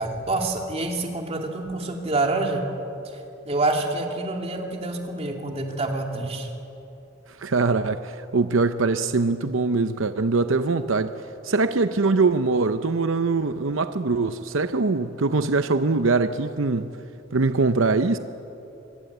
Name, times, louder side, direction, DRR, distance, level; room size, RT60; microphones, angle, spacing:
voice 1, 0.0-2.7 3.5-6.5, right 2 dB, 30° right, 2 dB, 2.8 m, -27 dB
voice 2, 7.4-11.2 11.4-16.9 17.3-18.2, right 3 dB, 80° right, 10 dB, 0.8 m, -22 dB
25.5 x 22.0 x 8.1 m, 2.9 s
head